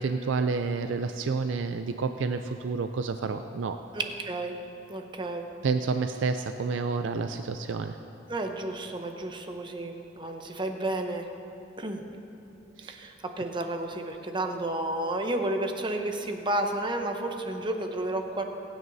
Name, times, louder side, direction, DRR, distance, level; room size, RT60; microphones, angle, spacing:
voice 1, 0.0-3.8 5.6-8.0 12.8-13.0, right 4 dB, 85° right, 8 dB, 0.4 m, -29 dB
voice 2, 3.9-4.5 4.9-5.4 8.3-11.3 11.8-12.0 12.9-18.4, right 1 dB, 25° right, 4 dB, 0.8 m, -31 dB
24.5 x 9.4 x 2.7 m, 2.8 s
head